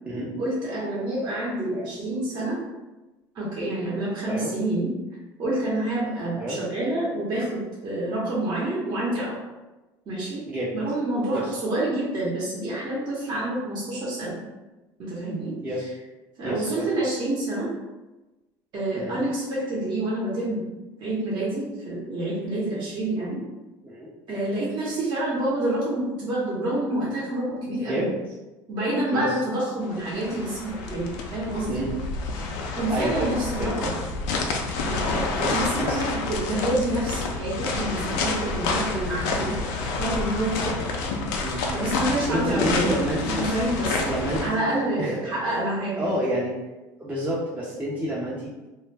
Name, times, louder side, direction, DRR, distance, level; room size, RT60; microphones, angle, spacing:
voice 1, 0.4-2.6 3.3-4.9 5.4-9.4 10.1-10.5 10.7-14.4 15.0-15.6 16.4-17.7 18.7-20.7 21.0-23.4 24.3-28.1 28.7-31.8 32.8-34.0 34.8-40.8 41.7-42.9 43.2-46.2, right 1 dB, 45° right, -6 dB, 0.8 m, -28 dB
voice 2, 15.6-15.9 16.4-16.9 18.9-19.2 23.8-24.1 27.9-28.1 29.1-29.3 31.7-31.9 32.9-33.3 33.6-33.9 35.3-36.1 41.4-41.6 42.3-43.4 44.0-45.2 45.9-46.5 47.0-48.7, right 1 dB, 15° right, -7 dB, 0.5 m, -29 dB
sound 1, 29.9-44.5, left 3 dB, 85° left, 0.4 m, -29 dB
2.1 x 2.1 x 3.2 m, 1.1 s
supercardioid pair, 105°, 10 cm